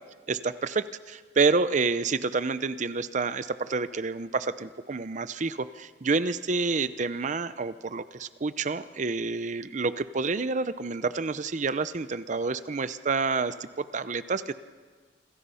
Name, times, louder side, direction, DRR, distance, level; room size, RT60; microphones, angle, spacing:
voice 1, 0.3-14.5, right 4 dB, 45° right, 13 dB, 0.6 m, -28 dB
27.0 x 26.5 x 5.6 m, 1.5 s
head